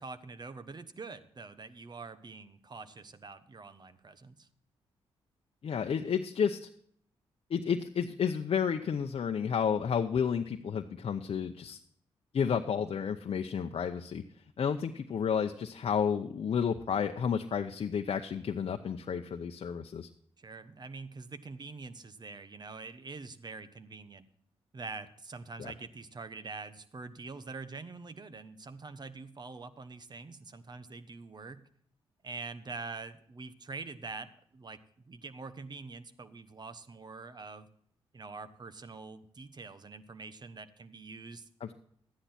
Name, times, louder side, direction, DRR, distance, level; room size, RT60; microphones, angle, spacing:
voice 1, 0.0-4.5 20.4-24.3 24.7-31.7 32.2-34.8 35.1-37.7 38.1-41.5, right 4 dB, 40° right, 12 dB, 1.1 m, -45 dB
voice 2, 5.6-6.7 7.5-11.8 12.3-14.2 14.6-20.1 25.6-25.7 41.6-41.7, left 7 dB, 60° left, 4 dB, 0.8 m, -31 dB
12.5 x 10.0 x 4.3 m, 0.63 s
cardioid pair, 60°, 11 cm